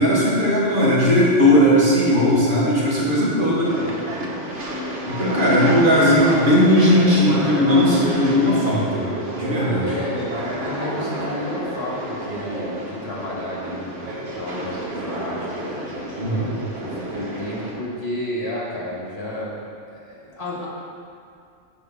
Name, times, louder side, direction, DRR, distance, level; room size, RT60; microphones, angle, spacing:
voice 1, 0.0-3.7 5.1-9.0 9.3-9.9 16.2-16.5, left 1 dB, 45° right, -7 dB, 1.9 m, -17 dB
sound 1, 3.6-17.7, right 1 dB, 80° right, 1.4 m, -29 dB
voice 2, 3.7-4.0 9.8-15.9 16.8-19.5 19.9-20.7, left 1 dB, 60° left, -6 dB, 2.0 m, -32 dB
6.9 x 4.9 x 6.1 m, 2.4 s
omnidirectional pair, 1.2 m